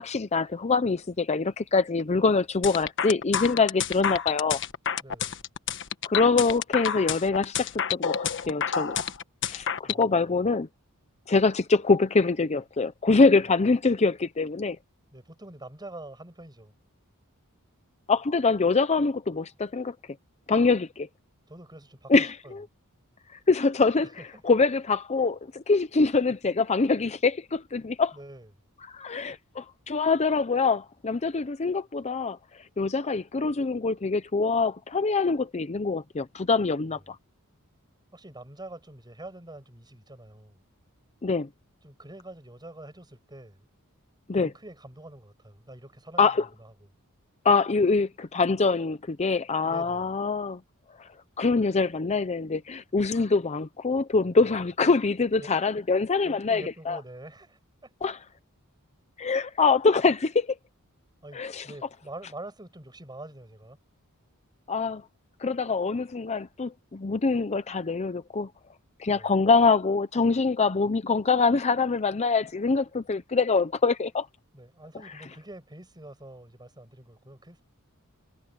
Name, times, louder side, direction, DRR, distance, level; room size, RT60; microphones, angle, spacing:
voice 1, 0.0-4.6 6.0-9.0 9.5-10.7 11.3-14.8 18.1-19.9 20.5-21.1 22.1-22.6 23.5-24.1 24.4-28.1 28.8-32.4 32.8-37.2 41.2-41.5 44.3-44.5 46.2-46.5 47.4-50.6 51.0-51.1 51.4-57.0 58.0-58.2 59.2-60.5 61.3-61.6 64.7-65.0 65.4-68.5 69.0-74.3 75.0-75.1, left 4 dB, 30° left, 0.6 m, -24 dB
sound 1, 2.6-10.0, left 8 dB, 55° left, 1.3 m, -29 dB
voice 2, 5.0-5.5 9.8-10.4 13.4-13.5 15.1-16.7 21.5-22.6 24.3-24.4 28.1-28.5 36.9-37.0 38.1-40.6 41.8-43.6 44.3-46.3 46.6-46.9 49.6-50.1 54.4-54.6 55.4-55.5 56.2-57.9 61.2-63.8 69.1-69.3 74.5-77.6, right 1 dB, 20° right, 7.5 m, -45 dB
head